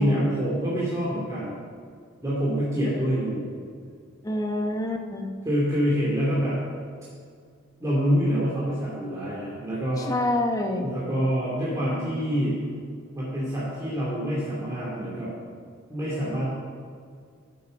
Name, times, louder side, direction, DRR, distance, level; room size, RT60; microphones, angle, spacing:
voice 1, 0.0-1.5 2.2-3.5 5.4-6.6 7.8-10.1 10.8-12.6 13.1-15.3 15.9-16.6, equal, 15° right, -8 dB, 2.7 m, -26 dB
voice 2, 4.2-5.3 10.0-11.0, left 1 dB, 15° left, 3 dB, 1.0 m, -27 dB
14.5 x 8.0 x 5.3 m, 2.1 s
head